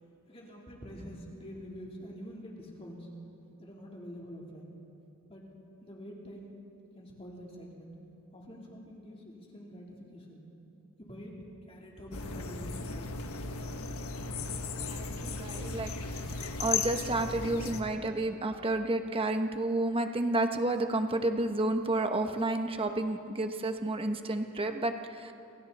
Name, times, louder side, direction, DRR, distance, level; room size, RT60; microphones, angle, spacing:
voice 1, 0.3-3.1 3.6-4.7 5.3-5.5 5.8-6.6 6.9-7.9 8.3-10.4 11.0-11.3 11.7-13.1, equal, 25° left, -3 dB, 3.6 m, -46 dB
sound 1, 12.1-17.8, left 4 dB, 75° left, 1.4 m, -36 dB
voice 2, 14.8-15.9 16.6-25.3, right 2 dB, 25° right, 6 dB, 1.2 m, -31 dB
29.0 x 27.5 x 4.3 m, 2.8 s
head